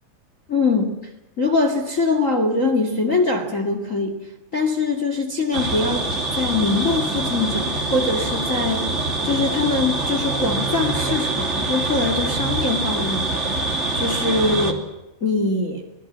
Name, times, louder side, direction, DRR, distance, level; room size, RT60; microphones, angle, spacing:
voice 1, 0.5-1.0 1.4-4.2 4.5-6.0 6.3-8.9 9.2-14.8 15.2-15.8, left 3 dB, 25° left, 5 dB, 1.9 m, -22 dB
sound 1, 5.5-14.7, right 2 dB, 20° right, 2.4 m, -24 dB
26.0 x 20.5 x 7.5 m, 1.0 s
omnidirectional pair, 4.7 m